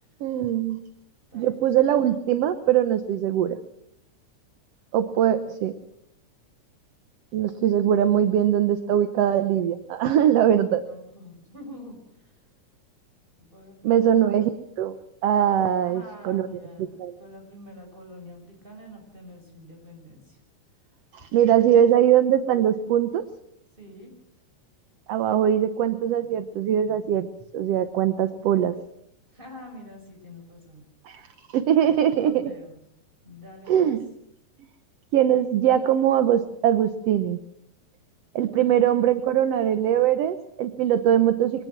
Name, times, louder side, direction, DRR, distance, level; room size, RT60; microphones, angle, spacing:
voice 1, 0.2-0.8 1.3-3.6 4.9-5.7 7.3-10.8 13.8-14.5 14.8-15.0 15.2-16.5 16.8-17.1 21.1-23.2 25.1-27.3 27.5-28.7 31.1-31.2 31.5-32.4 33.7-34.0 35.1-37.4 38.4-41.7, right 10 dB, 65° right, 10 dB, 1.8 m, -21 dB
voice 2, 1.3-1.7 10.2-10.6 10.8-12.3 13.4-14.1 15.8-16.9 17.2-20.4 21.4-21.5 23.8-24.1 29.3-30.8 31.8-32.8 33.2-33.9 38.6-38.7, left 1 dB, 15° right, 2 dB, 6.2 m, -46 dB
24.0 x 18.5 x 6.1 m, 0.76 s
omnidirectional pair, 3.5 m